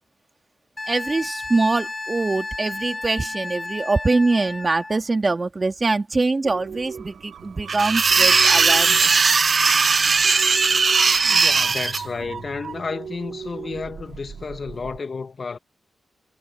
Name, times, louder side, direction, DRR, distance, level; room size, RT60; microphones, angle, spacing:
Wind instrument woodwind instrument, 0.8-5.0 7.7-7.8, left 2 dB, 30° left, 6.8 m, -33 dB
voice 1, 0.9-9.3, right 3 dB, 35° right, 2.6 m, -23 dB
sound 1, 6.4-15.0, right 7 dB, 80° right, 2.4 m, -38 dB
sound 2, 7.7-12.0, right 4 dB, 55° right, 0.7 m, -18 dB
voice 2, 11.2-15.6, left 4 dB, 55° left, 2.1 m, -32 dB
cardioid pair, 65°, 0 cm